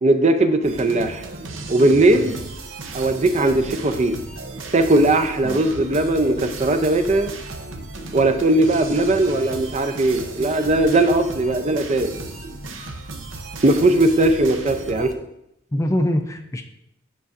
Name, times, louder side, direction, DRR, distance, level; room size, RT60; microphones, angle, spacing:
voice 1, 0.0-1.2 1.7-2.3 2.9-4.2 4.7-7.3 8.1-12.1 13.6-15.1, right 2 dB, 35° right, 8 dB, 0.5 m, -18 dB
sound 1, 0.6-15.1, right 2 dB, 80° right, 0.8 m, -35 dB
voice 2, 15.7-16.6, left 1 dB, 15° left, 6 dB, 0.4 m, -23 dB
9.5 x 5.2 x 2.5 m, 0.81 s
head